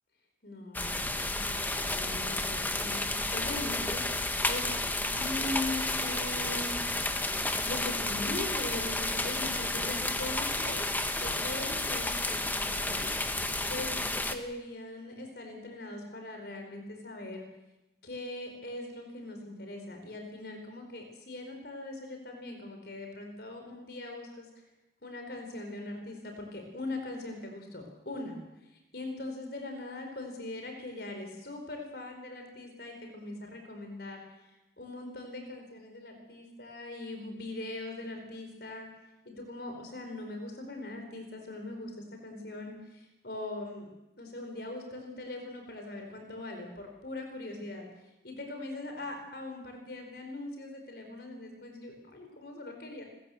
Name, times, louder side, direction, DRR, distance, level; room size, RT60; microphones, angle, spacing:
voice 1, 0.4-4.7 5.1-10.8 11.1-13.1 13.7-13.9 14.2-17.5 18.0-24.5 25.0-28.4 28.9-34.2 34.8-38.9 39.2-41.9 42.2-43.9 44.2-47.9 48.2-53.0, left 2 dB, 60° left, 4 dB, 4.5 m, -41 dB
sound 1, 0.7-14.3, left 2 dB, 10° left, 1.3 m, -31 dB
28.0 x 15.0 x 7.8 m, 0.97 s
head